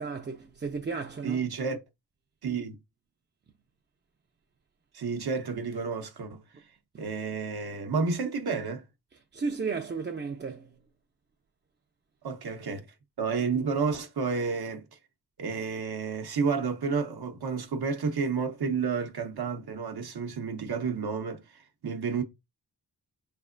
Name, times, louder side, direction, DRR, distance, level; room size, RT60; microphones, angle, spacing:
voice 1, 0.0-1.5 9.3-10.7, right 4 dB, 30° right, 0.4 m, -34 dB
voice 2, 1.2-1.8 2.4-2.8 4.9-6.4 7.0-8.8 12.2-12.8 13.2-14.8 15.4-22.2, right 5 dB, 70° right, 0.7 m, -30 dB
4.1 x 3.3 x 2.5 m
wide cardioid pair, 80°, 39 cm